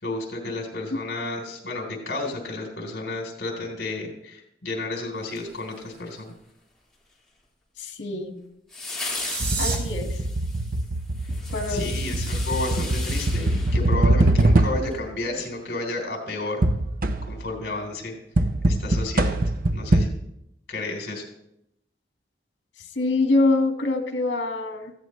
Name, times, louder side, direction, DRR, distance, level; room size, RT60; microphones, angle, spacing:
voice 1, 0.0-6.3 11.7-16.6 17.2-18.2 18.7-19.3 19.7-20.1 20.7-21.2, left 2 dB, 65° left, 2 dB, 3.7 m, -32 dB
sound 1, 5.3-6.2 8.7-14.5 14.9-15.0, left 3 dB, 5° left, 4.3 m, -37 dB
voice 2, 7.8-8.3 9.6-10.2 11.5-11.9 22.9-24.9, left 2 dB, 85° left, 5 dB, 1.7 m, -24 dB
sound 2, 8.8-9.8, right 4 dB, 65° right, 3.2 m, -31 dB
sound 3, 9.4-15.1 16.6-17.5 18.4-20.1, right 1 dB, 50° right, 0.8 m, -23 dB
18.5 x 15.5 x 3.2 m, 0.82 s
head